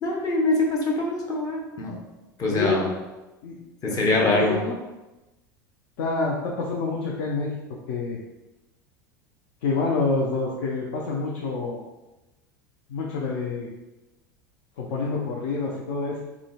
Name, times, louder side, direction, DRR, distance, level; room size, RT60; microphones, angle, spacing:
voice 1, 0.0-2.0 2.4-2.8 3.8-4.6, left 2 dB, 35° left, -1 dB, 0.8 m, -23 dB
voice 2, 2.5-2.9 3.4-3.6 3.9-4.8 6.0-7.5 7.9-8.2 9.6-11.8 12.9-13.7 14.8-16.2, left 3 dB, 65° left, -2 dB, 0.5 m, -27 dB
3.7 x 2.1 x 2.3 m, 1.0 s
hypercardioid pair, 85°, 11 cm